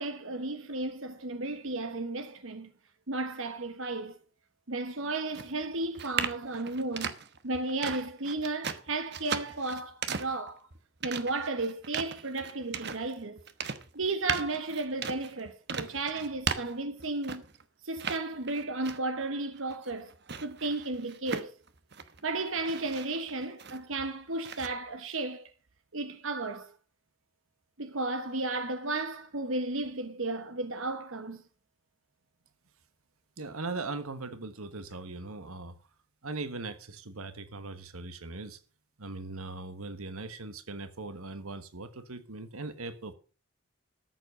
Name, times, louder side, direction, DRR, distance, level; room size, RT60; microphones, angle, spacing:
voice 1, 0.0-2.7 3.1-4.2 4.7-7.2 7.4-10.6 11.0-13.4 13.9-17.4 17.8-20.1 20.4-21.5 22.2-25.5 25.9-26.7 27.8-31.4, right 2 dB, 70° right, 1.3 m, -34 dB
sound 1, 5.3-17.6 18.0-19.2 19.6-22.2 22.5-24.1 24.4-24.7, right 6 dB, 50° right, 1.1 m, -37 dB
voice 2, 33.4-35.8 36.2-38.6 39.0-43.1, right 3 dB, 90° right, 1.4 m, -39 dB
13.5 x 7.5 x 6.4 m
head